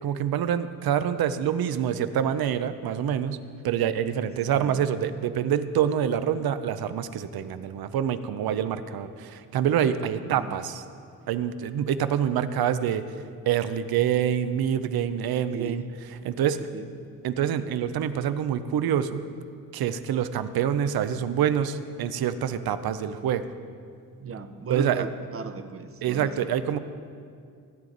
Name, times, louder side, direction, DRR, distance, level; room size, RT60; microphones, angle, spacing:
voice 1, 0.0-3.4 3.6-10.8 11.3-13.0 13.5-15.8 16.1-16.7 17.2-19.2 19.7-23.4 24.7-25.0 26.0-26.8, right 9 dB, 80° right, 12 dB, 0.6 m, -26 dB
voice 2, 4.5-4.8 10.3-10.5 15.5-15.9 16.7-16.9 24.2-26.5, right 5 dB, 40° right, 10 dB, 0.6 m, -37 dB
16.0 x 9.3 x 3.9 m, 2.3 s
wide cardioid pair, 125°, 36 cm